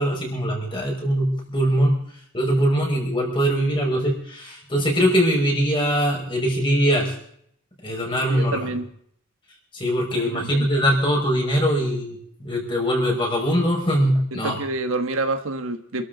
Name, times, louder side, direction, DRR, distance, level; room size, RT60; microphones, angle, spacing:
voice 1, 0.0-1.9 2.3-7.1 7.8-8.6 9.7-14.6, equal, 25° left, -1 dB, 5.5 m, -22 dB
voice 2, 8.3-8.9 10.3-10.7 14.3-16.0, right 2 dB, 70° right, 7 dB, 1.3 m, -27 dB
27.0 x 13.0 x 4.0 m, 0.65 s
head